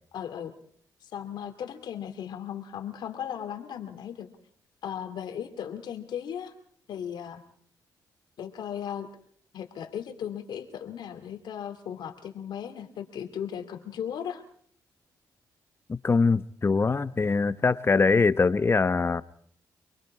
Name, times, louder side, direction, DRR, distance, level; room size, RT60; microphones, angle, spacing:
voice 1, 0.1-0.5 1.0-4.3 4.8-6.5 6.9-7.4 8.4-9.1 9.5-14.4, left 9 dB, 75° left, 2.3 m, -36 dB
voice 2, 15.9-19.2, left 4 dB, 35° left, 0.9 m, -23 dB
26.5 x 20.5 x 4.8 m
cardioid pair, 65°, 7 cm